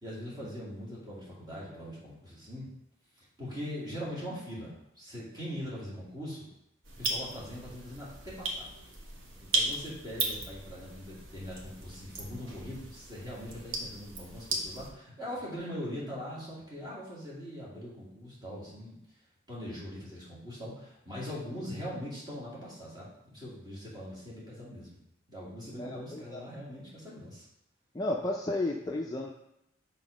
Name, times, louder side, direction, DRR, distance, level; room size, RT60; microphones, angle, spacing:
voice 1, 0.0-2.7 3.2-6.5 7.0-8.7 9.4-18.9 19.5-25.0 25.3-27.5, equal, 20° right, -8 dB, 2.2 m, -41 dB
sound 1, 6.8-14.9, right 2 dB, 90° right, 1.2 m, -36 dB
voice 2, 25.8-26.4 27.9-29.3, left 2 dB, 20° left, 0 dB, 0.3 m, -33 dB
6.0 x 3.6 x 5.0 m, 0.81 s
head